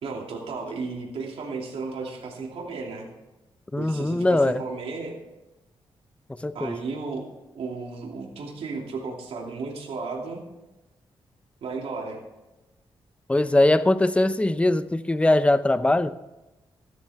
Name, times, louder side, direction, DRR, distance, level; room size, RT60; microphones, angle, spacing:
voice 1, 0.0-3.1 3.8-5.2 6.5-7.3 7.5-10.4 11.6-12.2, right 4 dB, 85° right, -1 dB, 2.7 m, -34 dB
voice 2, 3.7-4.6 6.4-6.7 13.3-16.1, left 2 dB, 10° left, 12 dB, 0.7 m, -21 dB
14.5 x 12.5 x 3.6 m, 1.0 s
cardioid pair, 95°, 10 cm